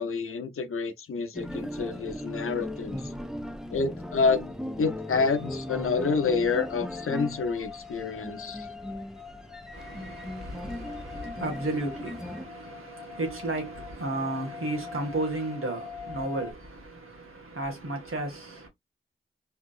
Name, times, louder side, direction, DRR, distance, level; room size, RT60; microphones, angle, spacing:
voice 1, 0.0-3.0 3.7-8.7, left 4 dB, 90° left, 0.6 m, -28 dB
sound 1, 1.3-12.5, equal, ahead, 0.6 m, -38 dB
sound 2, 3.4-16.5, left 7 dB, 20° left, 1.0 m, -45 dB
voice 2, 9.7-18.7, right 2 dB, 85° right, 1.7 m, -33 dB
3.6 x 2.6 x 2.4 m
cardioid pair, 55°, 21 cm